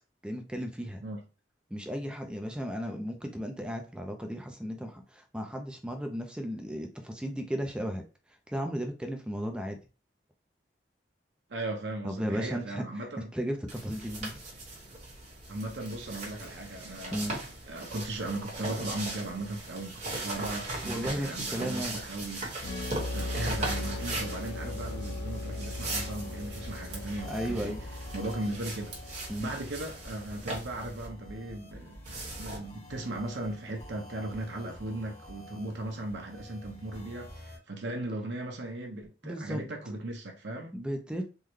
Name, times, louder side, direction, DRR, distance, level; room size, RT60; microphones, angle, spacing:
voice 1, 0.2-1.0 1.7-8.0 8.5-9.8 12.0-13.1 13.3-14.4 17.1-17.4 20.8-22.0 27.2-27.8 29.3-29.5 39.2-39.6 40.7-41.2, equal, 5° right, 0.4 m, -35 dB
voice 2, 11.5-13.3 15.5-17.4 17.7-22.5 23.1-27.8 28.1-32.0 32.4-40.8, right 2 dB, 75° right, 0.8 m, -37 dB
sound 1, 13.7-31.1 32.1-32.6, right 2 dB, 40° right, 1.2 m, -39 dB
sound 2, 21.9-37.6, left 1 dB, 35° left, 1.1 m, -49 dB
sound 3, 22.6-30.1, left 2 dB, 80° left, 0.4 m, -39 dB
3.6 x 2.1 x 3.1 m
head